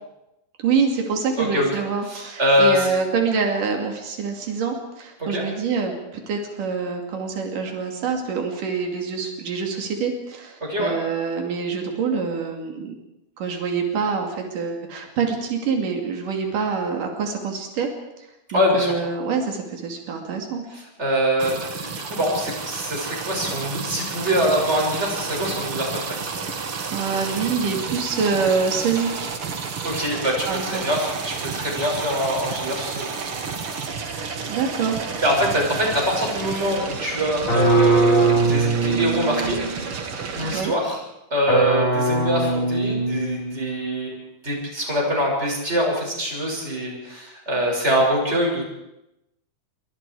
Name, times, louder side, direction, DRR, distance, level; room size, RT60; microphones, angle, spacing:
voice 1, 0.6-12.9 13.4-17.9 18.5-20.6 26.9-29.3 30.5-30.8 34.5-35.0 40.5-40.7, right 5 dB, 90° right, 2 dB, 4.2 m, -25 dB
voice 2, 1.4-1.7 2.1-2.9 5.2-5.4 10.6-11.0 18.5-18.9 20.7-26.2 29.8-33.1 35.2-39.6 40.3-41.0 41.3-44.2 44.4-48.8, equal, 20° right, -1 dB, 7.0 m, -24 dB
sound 1, 21.4-40.6, right 5 dB, 45° right, 2.5 m, -31 dB
sound 2, 37.5-39.9 41.5-43.8, right 3 dB, 40° left, 5.7 m, -21 dB
26.5 x 23.5 x 4.9 m, 0.90 s
omnidirectional pair, 3.6 m